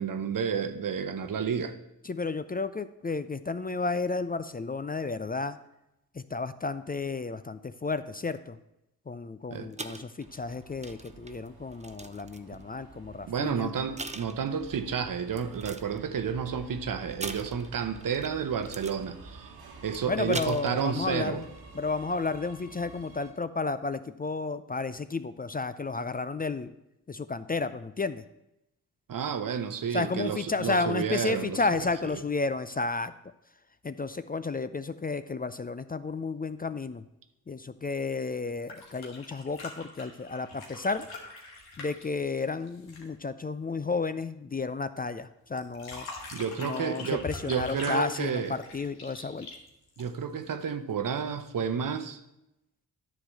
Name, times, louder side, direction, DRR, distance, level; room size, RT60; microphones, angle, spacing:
voice 1, 0.0-1.8 9.5-9.7 12.5-12.6 13.3-19.5 19.8-21.4 29.1-31.6 32.0-32.1 46.3-48.6 50.0-52.2, right 7 dB, 60° right, 10 dB, 0.9 m, -31 dB
voice 2, 2.0-5.6 6.1-8.6 9.1-13.7 20.1-21.4 21.7-26.7 27.1-28.2 29.9-33.1 33.8-37.0 37.5-41.1 41.8-46.1 46.6-49.5, left 3 dB, 25° left, 13 dB, 0.4 m, -32 dB
sound 1, 9.7-12.6 13.4-13.6 14.0-14.8 15.3-16.0 17.2-18.4 18.6-19.0 20.1-21.1 21.4-21.6, right 3 dB, 20° right, 0.7 m, -41 dB
Subway metro underground, 10.2-23.3, right 3 dB, 80° right, 1.4 m, -49 dB
sound 2, 38.5-43.2 45.6-50.4 51.9-52.0, left 3 dB, 90° left, 1.5 m, -43 dB
9.9 x 3.9 x 7.3 m, 0.87 s
supercardioid pair, 45°, 37 cm